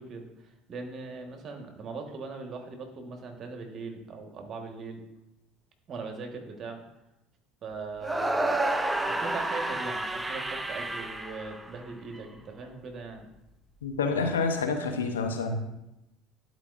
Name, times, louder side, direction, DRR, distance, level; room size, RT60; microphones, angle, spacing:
voice 1, 0.0-5.0 5.9-6.8 7.6-8.6 9.1-13.2, right 4 dB, 45° right, 4 dB, 1.4 m, -40 dB
sound 1, 8.0-12.2, right 2 dB, 10° right, 0.6 m, -30 dB
voice 2, 13.8-15.6, left 4 dB, 90° left, 5 dB, 0.7 m, -28 dB
11.0 x 4.7 x 2.5 m, 0.91 s
hypercardioid pair, 70°, 0 cm